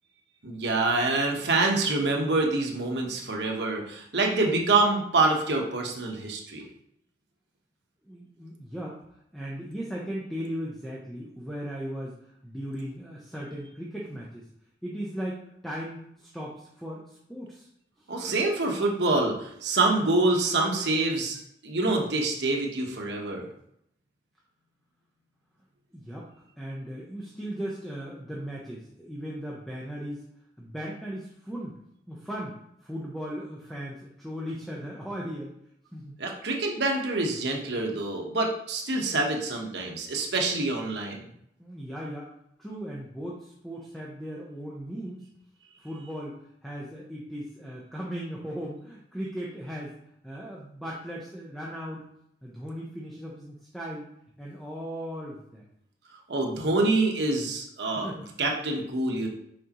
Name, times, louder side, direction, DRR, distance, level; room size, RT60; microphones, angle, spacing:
voice 1, 0.4-6.7 18.1-21.4 21.6-23.5 36.2-41.2 56.3-58.1 58.4-59.3, right 2 dB, 80° right, 1 dB, 1.1 m, -26 dB
voice 2, 8.1-9.0 9.3-14.5 14.8-17.7 18.0-18.1 25.9-30.2 30.6-31.7 32.1-35.5 35.9-36.1 41.6-42.3 42.6-45.3 45.8-46.3 46.6-50.0 50.2-52.0 52.4-54.0 54.4-55.6 58.0-58.2, equal, ahead, -5 dB, 0.8 m, -37 dB
6.4 x 5.2 x 3.0 m, 0.74 s
head